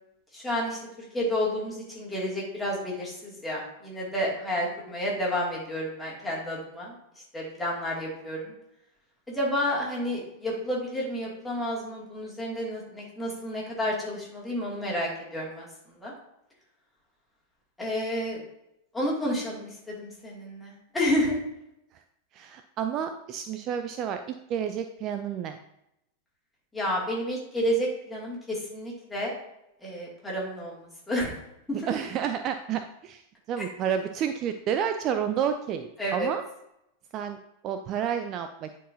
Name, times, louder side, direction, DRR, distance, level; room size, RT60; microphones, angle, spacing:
voice 1, 0.3-6.9 7.3-8.5 9.3-15.7 16.0-16.1 17.8-18.4 18.9-21.4 26.7-29.3 29.8-31.4 31.8-31.9 36.0-36.3, equal, 5° left, -5 dB, 2.4 m, -30 dB
voice 2, 22.3-25.6 31.9-36.4 37.1-37.4 37.6-38.7, right 8 dB, 35° right, 8 dB, 0.4 m, -30 dB
9.9 x 4.5 x 2.7 m, 0.83 s
figure-of-eight pair, 90°, 0 cm